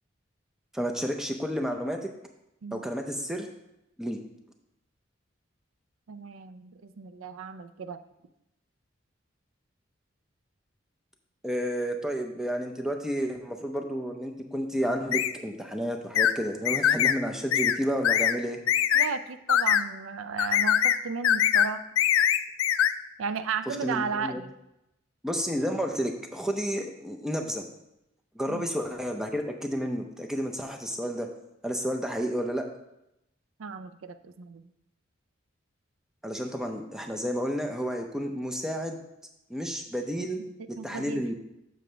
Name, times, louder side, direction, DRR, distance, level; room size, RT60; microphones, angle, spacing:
voice 1, 0.7-2.1 2.7-3.5 4.0-4.2 11.4-18.6 23.7-24.4 25.2-27.6 28.4-31.3 31.6-32.6 36.2-39.0 39.5-40.4 40.7-41.3, equal, 5° right, 3 dB, 0.5 m, -31 dB
voice 2, 6.1-8.0 18.9-21.8 23.2-24.5 28.5-28.7 33.6-34.7 40.8-41.2, right 5 dB, 85° right, 12 dB, 0.4 m, -34 dB
sound 1, 15.1-15.3 16.2-16.3 16.7-17.2 17.5-17.8 18.0-18.4 18.7-19.1 19.5-19.8 20.4-21.0 21.2-21.7 22.0-22.9, left 10 dB, 85° left, 0.3 m, -22 dB
6.9 x 6.3 x 3.3 m, 0.87 s
head